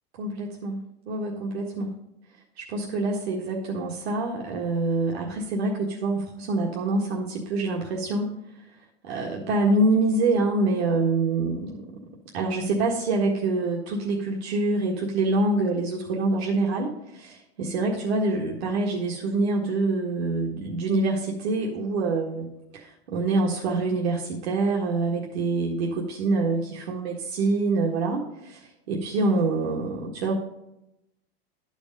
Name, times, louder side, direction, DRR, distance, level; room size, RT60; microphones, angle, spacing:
voice 1, 0.1-2.0 2.6-8.3 9.0-12.0 12.3-22.5 22.7-30.3, right 2 dB, 85° right, -1 dB, 1.7 m, -26 dB
11.5 x 5.2 x 5.2 m, 0.86 s
supercardioid pair, 160°, 31 cm